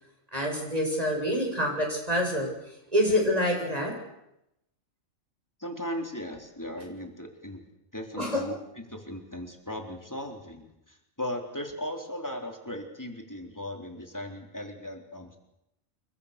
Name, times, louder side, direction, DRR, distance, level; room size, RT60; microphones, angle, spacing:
voice 1, 0.3-2.5 2.9-3.9 8.2-8.4, equal, 25° right, 1 dB, 8.2 m, -26 dB
voice 2, 5.6-7.6 7.9-8.6 8.9-15.4, left 1 dB, 15° left, 3 dB, 4.0 m, -37 dB
30.0 x 23.5 x 6.9 m, 0.85 s
omnidirectional pair, 1.4 m